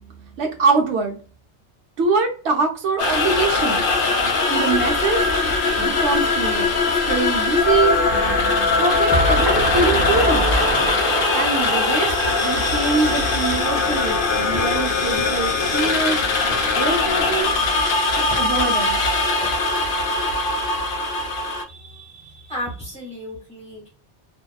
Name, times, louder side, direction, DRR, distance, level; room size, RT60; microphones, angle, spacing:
voice 1, 0.4-1.2 2.0-3.8 4.5-5.3 5.8-8.0 8.8-10.6 11.3-12.1 12.4-16.2 16.8-17.6 18.1-19.0, right 4 dB, 75° right, 4 dB, 0.9 m, -23 dB
sound 1, 3.0-21.6, left 3 dB, 60° left, 0.7 m, -21 dB
sound 2, 9.1-14.0, right 1 dB, 35° right, 0.3 m, -25 dB
sound 3, 14.5-17.8 18.3-19.0 19.4-19.6, left 1 dB, 30° left, 1.0 m, -38 dB
voice 2, 21.7-23.9, equal, 5° left, -4 dB, 1.3 m, -34 dB
2.7 x 2.2 x 2.2 m, 0.39 s
omnidirectional pair, 1.2 m